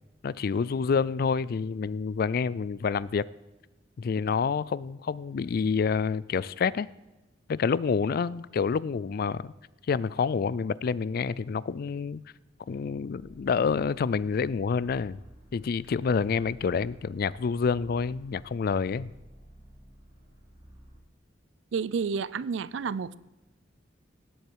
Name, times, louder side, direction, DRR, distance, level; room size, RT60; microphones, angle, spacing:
voice 1, 0.2-3.3 4.0-6.9 7.5-9.5 9.9-12.2 12.7-15.2 15.5-19.1, left 5 dB, 50° left, 20 dB, 0.3 m, -28 dB
sound 1, 12.8-21.1, equal, 35° right, 4.2 m, -54 dB
voice 2, 21.7-23.2, right 5 dB, 75° right, 18 dB, 0.4 m, -30 dB
17.5 x 8.0 x 4.6 m, 1.0 s
head